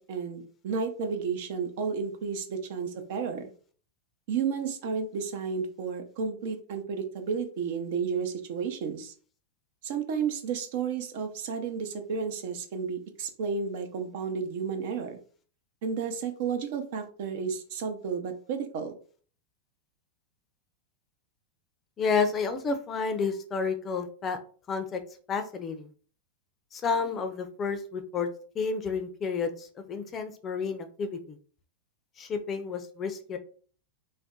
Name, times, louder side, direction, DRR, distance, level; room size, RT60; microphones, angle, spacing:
voice 1, 0.0-3.5 4.3-9.1 9.8-15.2 15.8-18.9, right 6 dB, 65° right, 6 dB, 0.7 m, -32 dB
voice 2, 22.0-24.4 24.7-25.0 25.3-25.9 26.7-28.3 28.6-31.4 32.2-33.4, left 5 dB, 30° left, 8 dB, 0.5 m, -30 dB
2.5 x 2.2 x 3.7 m, 0.43 s
hypercardioid pair, 120°, 0 cm